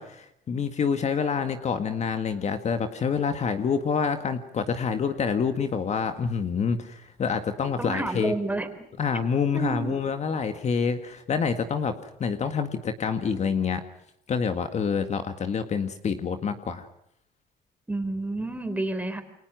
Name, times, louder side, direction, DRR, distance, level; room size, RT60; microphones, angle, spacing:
voice 1, 0.0-8.3 9.0-11.9 12.2-13.8 14.3-16.9, left 6 dB, 40° left, 8 dB, 1.9 m, -27 dB
sound 1, 5.8-13.6, left 1 dB, 70° left, 5.7 m, -52 dB
voice 2, 7.8-8.7 9.5-10.0 17.9-19.2, right 2 dB, 10° right, 8 dB, 3.9 m, -29 dB
29.0 x 23.5 x 6.3 m, 0.74 s
cardioid pair, 110°, 17 cm